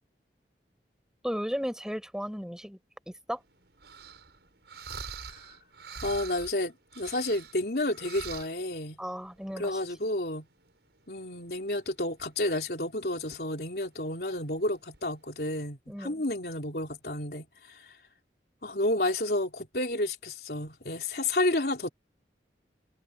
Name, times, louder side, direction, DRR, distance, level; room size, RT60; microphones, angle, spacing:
voice 1, 1.2-2.8 3.1-3.4 9.0-9.8 15.9-16.2, equal, 5° right, 5.4 m, -35 dB
sound 1, 3.3-15.5, right 6 dB, 75° right, 5.9 m, -46 dB
voice 2, 6.0-9.0 9.6-10.5 11.1-18.0 18.6-21.9, left 1 dB, 65° left, 3.5 m, -31 dB
head